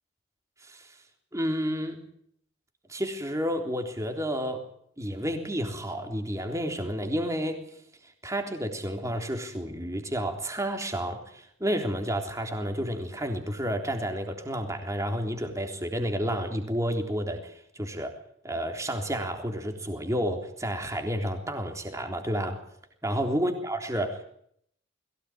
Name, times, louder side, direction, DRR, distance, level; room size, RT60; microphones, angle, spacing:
voice 1, 0.6-1.0 1.3-2.1 2.9-4.7 5.0-7.7 8.2-18.2 18.4-22.6 23.0-24.2, equal, 15° right, 4 dB, 3.5 m, -31 dB
22.0 x 17.0 x 8.9 m, 0.69 s
head